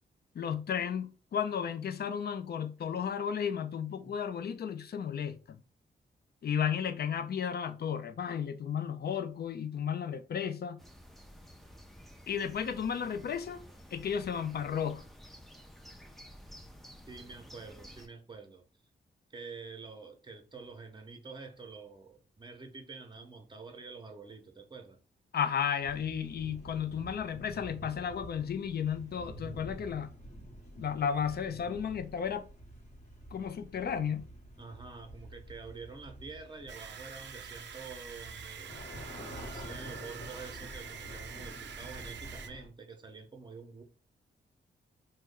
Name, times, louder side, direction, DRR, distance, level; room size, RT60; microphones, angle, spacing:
voice 1, 0.3-5.6 6.4-10.8 12.3-13.6 13.9-15.0 25.3-30.1 30.8-32.4 33.3-34.2, left 7 dB, 60° left, 0.5 m, -33 dB
sound 1, 10.8-18.1, equal, ahead, 0.5 m, -52 dB
voice 2, 17.1-18.6 19.3-25.0 34.6-43.8, right 4 dB, 25° right, 0.8 m, -47 dB
sound 2, 25.8-42.7, equal, 40° left, 1.1 m, -48 dB
sound 3, 36.7-42.5, right 8 dB, 75° right, 0.4 m, -46 dB
3.0 x 2.2 x 3.7 m
cardioid pair, 75°, 19 cm